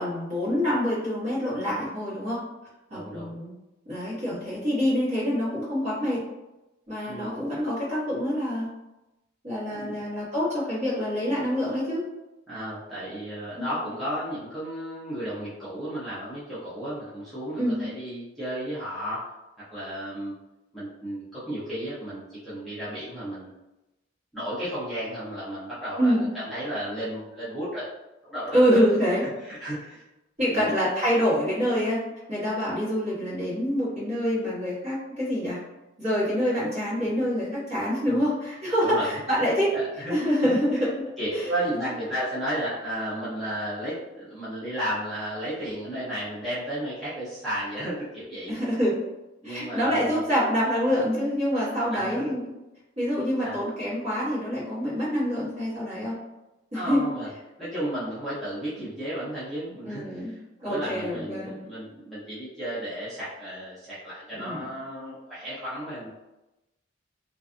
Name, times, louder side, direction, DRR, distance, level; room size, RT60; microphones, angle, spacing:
voice 1, 0.0-2.4 2.9-3.5 3.9-6.2 6.9-8.7 9.4-12.0 13.6-13.7 17.6-17.8 26.0-26.2 28.5-29.3 30.4-32.0 32.3-35.6 36.0-39.7 40.1-40.9 41.3-41.4 48.5-49.0 49.4-52.5 53.0-56.2 56.7-57.0 59.8-60.3 60.6-61.6 64.4-64.7, equal, 35° right, -9 dB, 1.2 m, -26 dB
voice 2, 2.9-3.3 7.1-7.3 9.7-10.0 12.5-19.3 19.7-20.3 20.7-23.5 24.3-27.9 28.2-28.8 29.2-30.0 30.5-30.8 38.0-38.2 38.8-39.1 39.7-40.8 41.2-48.5 49.4-50.4 51.9-52.3 53.4-53.6 56.7-57.3 57.6-60.4 60.7-66.1, right 1 dB, ahead, -13 dB, 0.7 m, -33 dB
2.5 x 2.3 x 2.5 m, 0.99 s
head